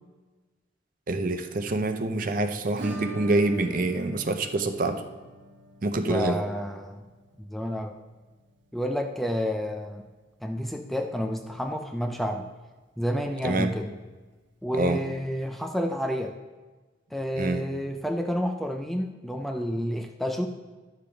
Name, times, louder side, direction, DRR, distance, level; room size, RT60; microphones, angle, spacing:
voice 1, 1.1-5.0 5.8-6.4 13.4-13.7 14.7-15.0 17.4-17.7, right 2 dB, 45° right, 8 dB, 0.6 m, -26 dB
Acoustic guitar / Strum, 2.8-11.4 11.6-11.7 12.0-12.1 12.5-12.6 14.6-14.7 15.8-15.9, right 3 dB, 70° right, 1.1 m, -44 dB
voice 2, 6.1-7.1 7.4-8.0 8.7-10.0 10.4-12.5 13.0-14.0 14.6-16.4 17.1-20.5, equal, ahead, 4 dB, 0.3 m, -30 dB
11.5 x 6.9 x 3.4 m, 1.3 s
head